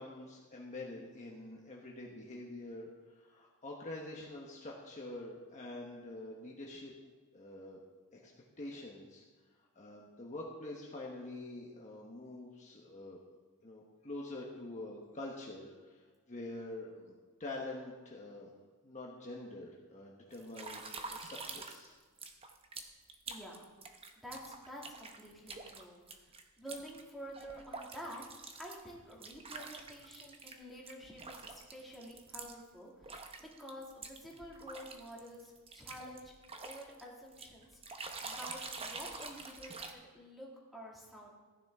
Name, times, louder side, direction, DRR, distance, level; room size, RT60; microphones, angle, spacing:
voice 1, 0.0-6.9 7.3-7.8 8.1-9.2 9.7-13.2 13.6-16.0 16.3-17.1 17.4-18.5 18.8-21.9, left 2 dB, 35° left, -2 dB, 1.2 m, -46 dB
sound 1, 20.3-21.9 22.2-30.6 30.9-32.6 33.0-37.0 37.3-39.9, right 4 dB, 25° right, 0.8 m, -47 dB
voice 2, 23.3-23.6 24.2-28.2 28.6-36.3 36.6-41.3, equal, ahead, -4 dB, 2.4 m, -49 dB
15.0 x 10.0 x 3.7 m, 1.4 s
head